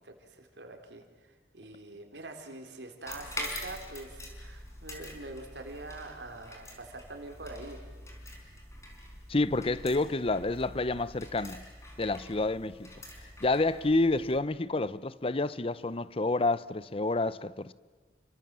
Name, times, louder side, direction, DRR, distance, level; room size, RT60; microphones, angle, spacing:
voice 1, 0.0-7.8, right 2 dB, 85° right, 3.8 m, -45 dB
sound 1, 3.1-14.4, left 1 dB, 15° left, 5.0 m, -45 dB
voice 2, 9.3-11.6 12.0-12.9 13.4-17.7, left 2 dB, 30° left, 0.8 m, -29 dB
30.0 x 25.0 x 7.6 m
head